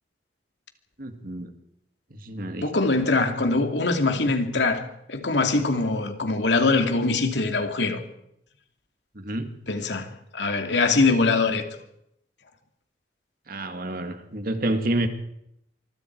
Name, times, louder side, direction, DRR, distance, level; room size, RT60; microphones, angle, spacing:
voice 1, 1.0-1.5 2.1-2.7 9.2-9.5 13.5-15.1, right 1 dB, 55° right, 7 dB, 2.2 m, -29 dB
voice 2, 2.6-8.0 9.7-10.1 10.3-11.6, left 3 dB, 90° left, 5 dB, 2.6 m, -23 dB
25.0 x 23.5 x 4.7 m, 0.78 s
head